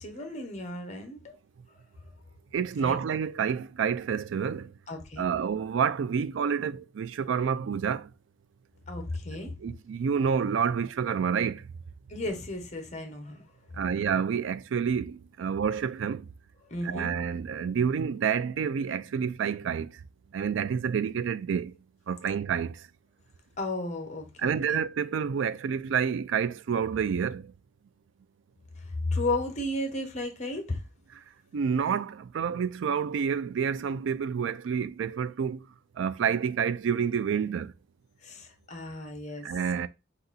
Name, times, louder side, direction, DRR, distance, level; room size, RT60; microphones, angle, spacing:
voice 1, 0.0-1.3 2.8-3.0 4.9-5.3 8.9-9.6 12.1-13.4 16.7-17.1 23.6-24.8 28.7-30.8 38.2-39.5, left 2 dB, 40° left, 1.0 m, -34 dB
voice 2, 2.5-4.6 5.2-8.0 9.6-11.6 13.8-16.2 16.8-19.9 20.3-21.7 22.1-22.7 24.4-27.4 31.5-35.6 36.0-37.7 39.5-39.9, right 7 dB, 80° right, 0.3 m, -28 dB
3.9 x 2.6 x 4.0 m
head